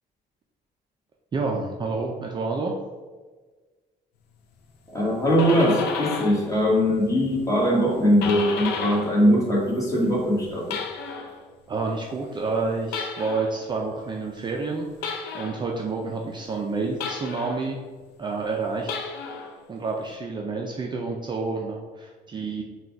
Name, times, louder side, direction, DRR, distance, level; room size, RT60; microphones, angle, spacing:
voice 1, 1.3-2.7 11.7-17.8 18.2-22.6, right 3 dB, 25° right, 0 dB, 0.4 m, -29 dB
voice 2, 4.9-10.8, equal, 20° left, -4 dB, 1.4 m, -21 dB
sound 1, 5.1-6.5 6.8-9.2 9.5-11.4 12.9-13.6 15.0-15.7 17.0-17.7 18.8-19.5, left 5 dB, 75° left, 0.5 m, -32 dB
3.9 x 2.3 x 4.4 m, 1.4 s
cardioid pair, 110°, 17 cm